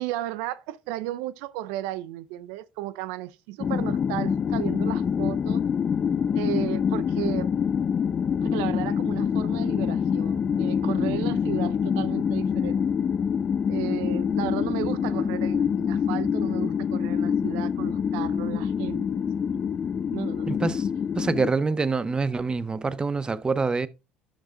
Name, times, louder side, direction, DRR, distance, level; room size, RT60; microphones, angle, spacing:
voice 1, 0.0-5.6 6.3-7.5 8.4-12.8 13.7-19.6 20.1-20.6, right 15 dB, 80° right, 0.5 m, -34 dB
sound 1, 3.6-21.5, left 7 dB, 40° left, 0.4 m, -26 dB
voice 2, 20.5-20.9 21.2-23.9, right 4 dB, 20° right, 0.7 m, -26 dB
11.5 x 5.1 x 3.7 m
supercardioid pair, 80°, 4 cm